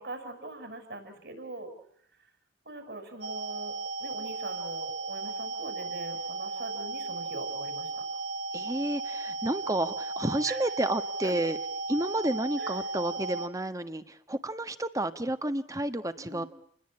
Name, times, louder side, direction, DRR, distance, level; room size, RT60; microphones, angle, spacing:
voice 1, 0.0-1.7 2.6-8.0 10.5-10.6 11.2-11.3 12.6-12.8 16.2-16.5, right 2 dB, 60° right, 8 dB, 6.4 m, -42 dB
sound 1, 3.2-13.5, right 3 dB, 80° right, 1.5 m, -35 dB
voice 2, 8.5-11.6 11.9-16.4, right 1 dB, 20° right, 10 dB, 1.4 m, -31 dB
29.5 x 21.0 x 8.7 m, 0.67 s
head